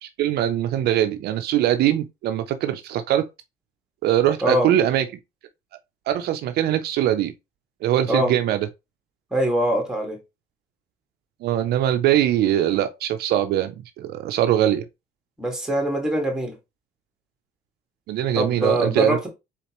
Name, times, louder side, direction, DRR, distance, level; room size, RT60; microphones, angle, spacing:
voice 1, 0.0-3.3 4.0-5.1 6.1-7.3 7.8-8.7 11.4-14.8 18.1-19.2, right 11 dB, 70° right, 0.5 m, -22 dB
voice 2, 9.3-10.2 15.4-16.6 18.3-19.3, right 1 dB, 5° right, 1.9 m, -23 dB
4.2 x 4.2 x 3.0 m
cardioid pair, 110°, 17 cm